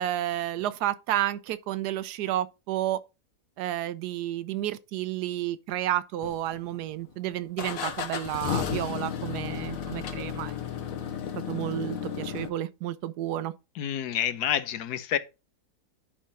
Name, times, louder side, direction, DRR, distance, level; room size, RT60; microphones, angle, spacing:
voice 1, 0.0-3.0 3.6-10.5 11.5-13.5, right 13 dB, 90° right, 1.2 m, -31 dB
sound 1, 6.2-6.9 7.6-12.5, left 8 dB, 65° left, 1.2 m, -33 dB
voice 2, 13.7-15.2, left 10 dB, 80° left, 1.2 m, -28 dB
10.0 x 3.6 x 4.1 m
omnidirectional pair, 1.7 m